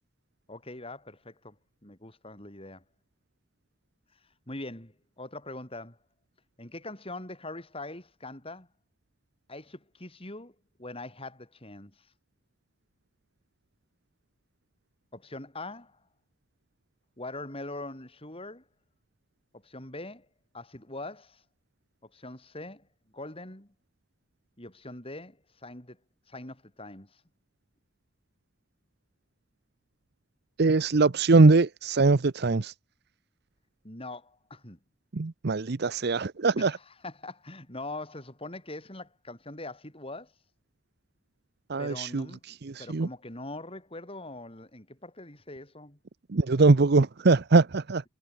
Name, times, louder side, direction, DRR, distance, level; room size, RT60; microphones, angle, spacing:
voice 1, 0.5-1.6 1.8-2.8 4.5-6.0 6.6-8.7 9.5-12.1 15.1-16.0 17.2-18.6 19.5-20.3 20.5-21.4 22.0-22.9 23.1-23.7 24.6-26.0 26.3-27.2 33.8-34.8 36.6-40.3 41.8-46.0, left 2 dB, 30° left, 6.3 m, -42 dB
voice 2, 30.6-32.7 35.1-36.7 41.7-43.1 46.3-48.0, right 3 dB, 55° right, 0.7 m, -22 dB
head